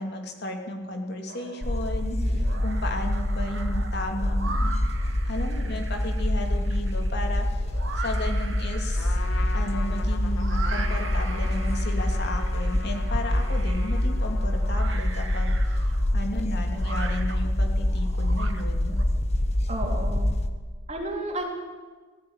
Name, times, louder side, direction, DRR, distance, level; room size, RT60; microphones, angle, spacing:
voice 1, 0.0-4.8 5.2-9.2 9.5-19.0, left 1 dB, 55° left, 3 dB, 2.9 m, -34 dB
sound 1, 1.3-1.9 2.3-19.0, right 4 dB, 65° right, 2.1 m, -41 dB
sound 2, 1.6-20.5, left 1 dB, 30° left, 1.1 m, -26 dB
voice 2, 2.2-2.5 19.7-20.3 20.9-21.5, right 1 dB, 35° right, 1 dB, 3.5 m, -32 dB
Trumpet, 9.0-15.1, left 4 dB, 85° left, 2.3 m, -41 dB
18.5 x 15.5 x 9.8 m, 1.4 s
head